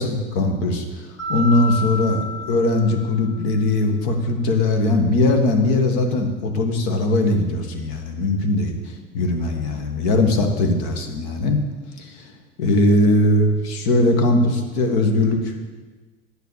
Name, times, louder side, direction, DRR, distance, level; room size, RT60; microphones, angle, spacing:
voice 1, 0.0-11.6 12.0-12.3 12.6-15.6, left 2 dB, 70° left, 4 dB, 1.8 m, -20 dB
Mallet percussion, 1.2-3.6, left 2 dB, 50° left, 3.4 m, -30 dB
9.2 x 7.1 x 6.4 m, 1.3 s
hypercardioid pair, 90°, 33 cm